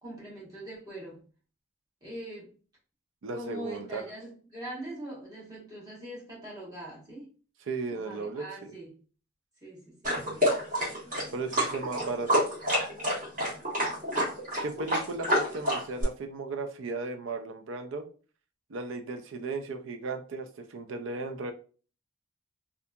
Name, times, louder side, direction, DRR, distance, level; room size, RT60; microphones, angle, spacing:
voice 1, 0.0-1.2 2.0-2.5 3.3-7.3 7.9-8.9 9.6-10.5, right 1 dB, 20° right, -5 dB, 1.1 m, -42 dB
voice 2, 3.2-4.1 7.7-8.8 10.3-10.4 11.3-12.4 14.6-18.0 18.7-21.5, right 3 dB, 75° right, 6 dB, 0.4 m, -36 dB
sound 1, 10.0-16.0, equal, 40° right, 1.5 m, -28 dB
2.7 x 2.5 x 2.2 m, 0.38 s
head